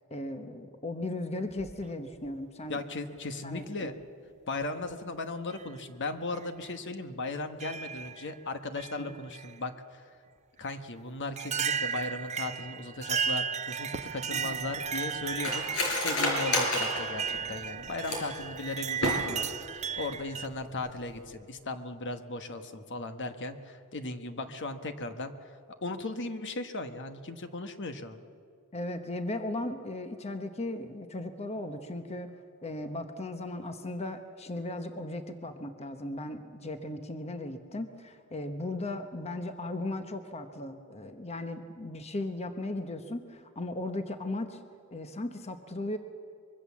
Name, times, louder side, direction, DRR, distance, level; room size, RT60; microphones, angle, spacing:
voice 1, 0.1-2.8 3.4-3.9 9.0-9.2 14.3-14.6 28.7-32.4 32.6-44.6 44.9-46.0, left 2 dB, 30° left, 7 dB, 1.0 m, -37 dB
sound 1, 1.5-2.4 3.5-3.6 4.6-4.9 5.5-5.7 6.3-6.5 7.6-8.3 8.8-9.5 10.7-10.8 11.4-20.5, right 7 dB, 30° right, 0.5 m, -35 dB
voice 2, 2.7-4.0 4.5-10.0 10.6-19.4 19.7-25.5 25.8-28.2, left 2 dB, 55° left, 8 dB, 1.3 m, -37 dB
Cutlery silverware, 14.0-18.4 18.9-19.6 19.9-20.0 20.3-20.7 21.0-21.2, left 1 dB, 80° left, 5.4 m, -31 dB
24.5 x 22.5 x 7.3 m, 2.4 s
head